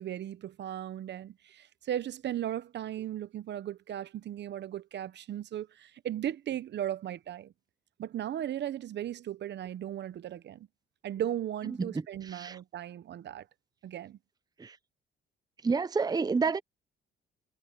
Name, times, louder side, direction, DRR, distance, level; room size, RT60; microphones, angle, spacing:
voice 1, 0.0-7.5 8.0-10.7 11.0-13.5 13.8-14.2, right 11 dB, 60° right, 0.8 m, -36 dB
voice 2, 12.3-12.6 14.6-14.8 15.6-16.6, right 4 dB, 20° right, 0.7 m, -29 dB
cardioid pair, 90°, 20 cm